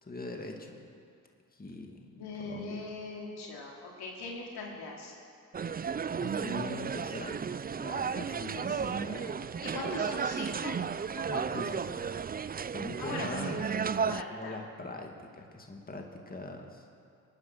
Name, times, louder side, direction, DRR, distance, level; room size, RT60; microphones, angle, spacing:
voice 1, 0.0-0.8 1.5-2.9 6.2-7.4 7.8-10.0 11.2-12.0 12.7-13.7 14.3-16.9, left 2 dB, 25° left, 2 dB, 2.2 m, -42 dB
voice 2, 2.1-5.1 8.4-9.1 9.6-10.8 11.3-11.6 13.0-13.7 14.0-14.5, left 3 dB, 75° left, -2 dB, 2.9 m, -41 dB
sound 1, 5.5-14.2, right 6 dB, 25° right, 0.4 m, -33 dB
22.0 x 10.0 x 6.1 m, 2.3 s
supercardioid pair, 50°, 38 cm